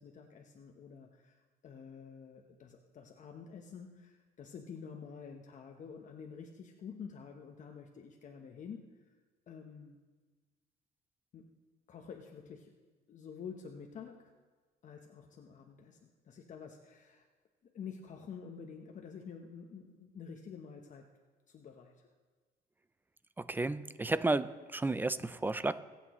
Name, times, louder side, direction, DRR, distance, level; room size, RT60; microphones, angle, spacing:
voice 1, 0.0-1.4 1.6-8.9 9.5-10.0 11.3-11.5 11.9-12.7 13.1-14.3 14.8-17.2 17.6-21.1 21.5-22.1, left 6 dB, 45° left, 2 dB, 1.0 m, -49 dB
voice 2, 23.4-25.8, right 2 dB, 10° right, 15 dB, 0.4 m, -32 dB
24.5 x 8.4 x 3.1 m, 1.4 s
cardioid pair, 110°, 17 cm